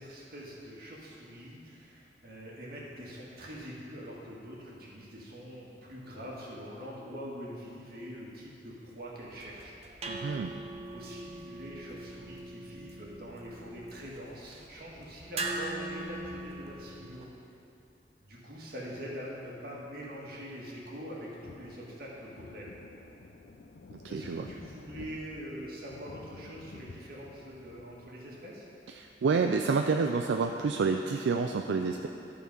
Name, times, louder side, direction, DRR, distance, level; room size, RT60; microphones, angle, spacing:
voice 1, 0.0-9.8 10.9-17.2 18.2-22.8 24.1-28.7, equal, 60° right, -4 dB, 1.8 m, -44 dB
sound 1, 9.3-17.2, right 2 dB, 35° right, 0.7 m, -41 dB
voice 2, 10.1-10.5 24.1-24.5 29.0-32.1, right 4 dB, 80° right, 4 dB, 0.4 m, -28 dB
sound 2, 21.4-28.2, left 3 dB, 80° left, 0.5 m, -51 dB
13.0 x 4.3 x 5.3 m, 2.8 s
head